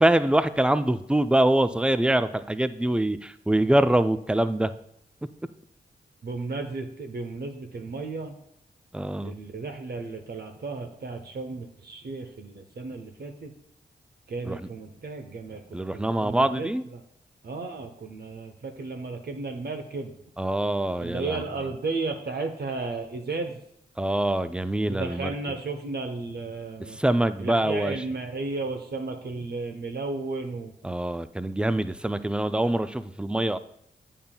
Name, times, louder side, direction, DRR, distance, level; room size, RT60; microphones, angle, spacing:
voice 1, 0.0-4.7 8.9-9.3 14.4-14.6 15.7-16.8 20.4-21.4 24.0-25.3 26.9-28.0 30.8-33.6, right 1 dB, 5° right, 12 dB, 0.4 m, -24 dB
voice 2, 6.2-8.3 9.2-13.5 14.3-17.0 17.4-20.1 21.0-23.6 24.9-27.0 27.4-30.7, right 3 dB, 60° right, 5 dB, 0.8 m, -34 dB
8.5 x 5.4 x 2.2 m, 0.74 s
supercardioid pair, 40°, 19 cm